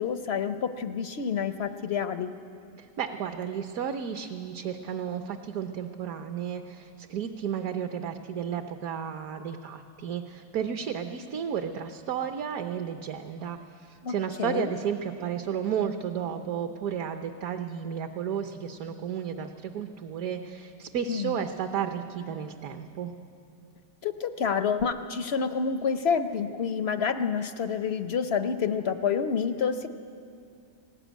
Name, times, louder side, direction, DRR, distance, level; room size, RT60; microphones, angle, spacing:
voice 1, 0.0-2.3 14.0-14.7 21.1-21.4 24.0-29.9, left 6 dB, 60° left, 10 dB, 0.6 m, -28 dB
voice 2, 2.8-23.1, right 8 dB, 60° right, 7 dB, 1.2 m, -33 dB
19.5 x 18.0 x 9.2 m, 2.4 s
omnidirectional pair, 1.9 m